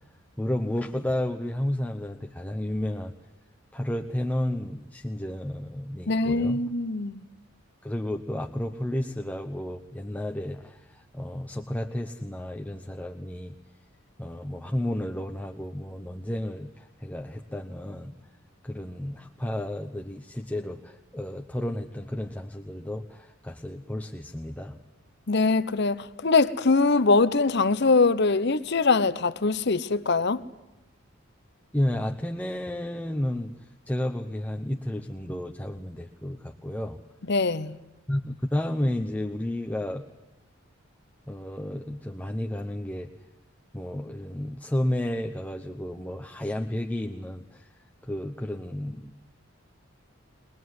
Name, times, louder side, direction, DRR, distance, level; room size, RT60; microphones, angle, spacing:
voice 1, 0.4-3.1 3.7-6.6 7.8-13.6 14.2-18.1 18.6-24.8 31.7-33.5 33.9-37.0 38.1-40.1 41.3-43.1 43.7-47.7 48.0-49.2, left 1 dB, 10° left, 0.9 m, -32 dB
voice 2, 6.1-7.2 25.3-30.4 37.3-37.8, left 3 dB, 55° left, 0.9 m, -23 dB
22.5 x 21.0 x 9.5 m
head